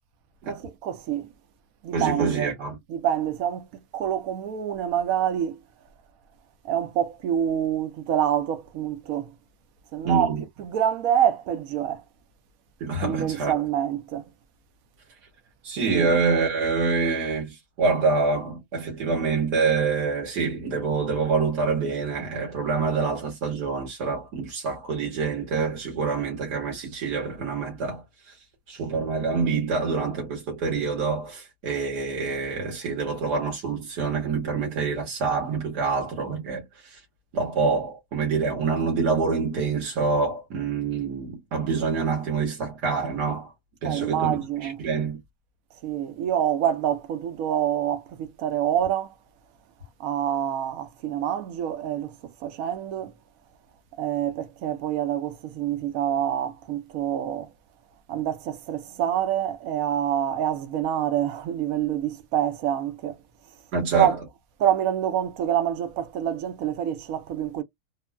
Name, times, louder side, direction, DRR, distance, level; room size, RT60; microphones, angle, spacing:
voice 1, 0.5-1.3 1.8-2.5 2.9-3.7 3.9-5.6 6.6-9.3 9.9-10.3 10.6-12.0 13.0-14.3 15.9-16.1 43.8-44.8 45.8-49.1 50.0-53.1 54.0-57.5 58.1-63.2 63.9-64.2 64.6-67.6, right 10 dB, 70° right, 0.9 m, -26 dB
voice 2, 1.9-2.8 10.0-10.4 12.8-13.5 15.6-28.3 28.7-37.0 37.3-43.5 43.8-45.2 63.7-64.2, right 4 dB, 85° right, 1.7 m, -26 dB
3.7 x 2.1 x 2.2 m
omnidirectional pair, 1.7 m